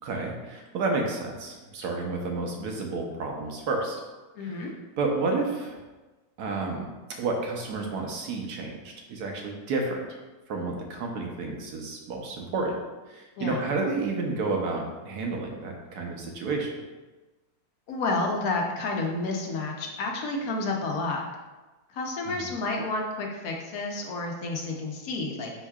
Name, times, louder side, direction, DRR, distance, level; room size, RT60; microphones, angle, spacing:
voice 1, 0.0-4.0 4.4-4.7 5.0-5.8 6.4-6.9 7.2-10.0 10.5-12.8 13.1-16.7 22.3-22.4, right 3 dB, 80° right, 1 dB, 1.3 m, -30 dB
voice 2, 4.4-4.7 13.4-13.6 17.9-21.2 21.9-25.5, left 2 dB, 70° left, 0 dB, 1.1 m, -30 dB
4.7 x 4.5 x 2.3 m, 1.2 s
omnidirectional pair, 1.7 m